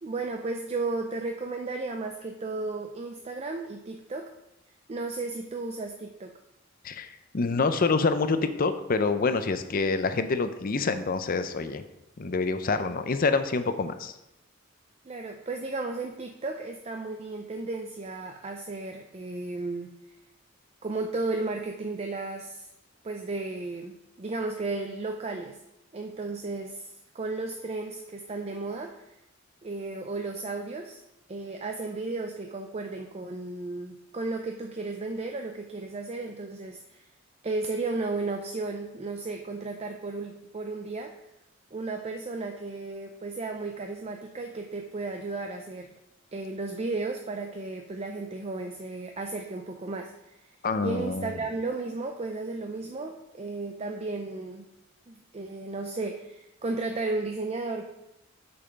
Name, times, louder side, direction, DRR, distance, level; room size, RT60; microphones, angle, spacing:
voice 1, 0.0-4.3 4.9-6.3 15.1-19.9 20.8-22.7 23.0-25.6 25.9-29.1 29.6-31.0 31.3-37.1 37.4-41.1 41.7-45.9 46.3-50.3 50.8-54.7 55.1-57.8, right 3 dB, 30° right, 4 dB, 0.5 m, -34 dB
voice 2, 6.8-11.8 12.2-14.2 50.6-51.3, left 4 dB, 45° left, 10 dB, 0.6 m, -27 dB
6.9 x 5.6 x 5.1 m, 0.90 s
head